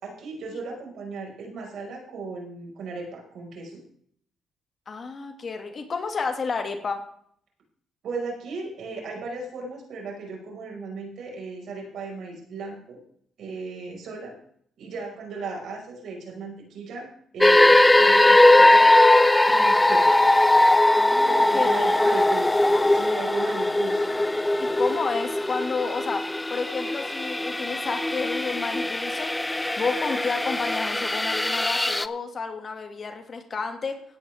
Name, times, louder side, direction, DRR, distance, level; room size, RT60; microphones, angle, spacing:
voice 1, 0.0-3.8 8.0-13.0 13.4-14.3 14.8-17.1 17.3-18.9 19.5-20.1 21.2-24.3, right 3 dB, 70° right, 0 dB, 5.3 m, -36 dB
voice 2, 4.9-7.0 21.0-22.1 24.6-26.2 26.5-34.0, left 4 dB, 45° left, 5 dB, 2.1 m, -31 dB
sound 1, 17.4-32.1, left 1 dB, 10° left, 0.5 m, -20 dB
16.5 x 9.9 x 3.5 m, 0.63 s
cardioid pair, 90°, 0 cm